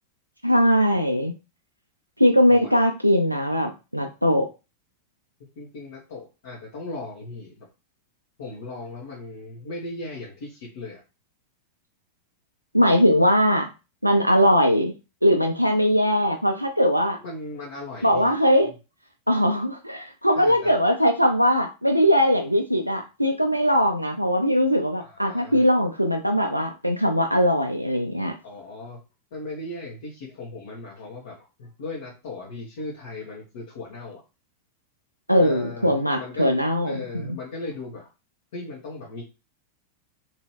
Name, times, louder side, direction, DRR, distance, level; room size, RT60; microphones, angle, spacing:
voice 1, 0.4-1.3 2.2-4.5 12.7-13.7 14.0-14.9 15.2-17.2 18.0-18.7 19.3-28.3 35.3-37.4, equal, 90° right, 3 dB, 0.4 m, -20 dB
voice 2, 5.6-7.7 8.4-11.0 17.2-18.4 20.3-20.7 25.0-25.6 28.4-29.0 29.3-34.2 35.4-36.6 36.8-38.1 38.5-39.2, left 2 dB, 55° left, -6 dB, 1.2 m, -37 dB
3.0 x 2.8 x 3.2 m, 0.29 s
figure-of-eight pair, 90°, 0 cm